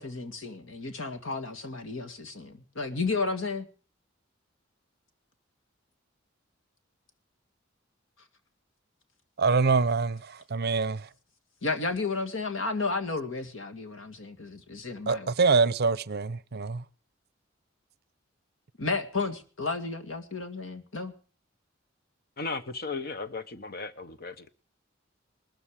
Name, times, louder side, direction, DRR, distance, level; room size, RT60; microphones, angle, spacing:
voice 1, 0.0-3.7 11.6-15.3 18.8-21.1, left 3 dB, 75° left, 2.1 m, -32 dB
voice 2, 9.4-11.1 15.1-16.8, right 4 dB, 55° right, 0.6 m, -25 dB
voice 3, 22.4-24.5, left 4 dB, 50° left, 1.2 m, -36 dB
19.5 x 13.0 x 4.9 m
head